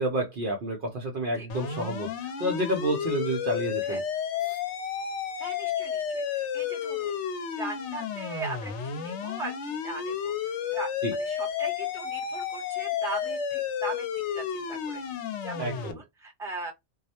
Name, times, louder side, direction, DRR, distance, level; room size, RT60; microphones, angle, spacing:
voice 1, 0.0-4.0 4.4-4.6 11.0-11.1 15.6-16.0, right 1 dB, 55° right, 0.6 m, -30 dB
sound 1, 1.5-15.9, left 8 dB, 75° left, 0.9 m, -32 dB
voice 2, 5.4-7.2 7.5-10.9 11.2-15.0 15.4-16.7, right 3 dB, 5° right, 0.8 m, -39 dB
2.3 x 2.0 x 2.7 m
omnidirectional pair, 1.2 m